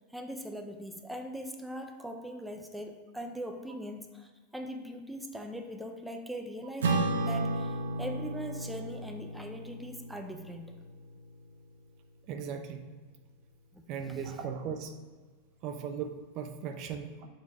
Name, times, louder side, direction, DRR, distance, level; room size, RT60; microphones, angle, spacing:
voice 1, 0.1-10.7 13.7-14.3, equal, 5° right, 4 dB, 0.5 m, -41 dB
Acoustic guitar / Strum, 6.8-11.5, right 2 dB, 85° right, 0.8 m, -33 dB
voice 2, 12.3-12.9 13.9-14.9 15.6-17.3, right 7 dB, 50° right, 6 dB, 0.7 m, -37 dB
5.2 x 3.4 x 5.4 m, 1.4 s
hypercardioid pair, 105°, 0 cm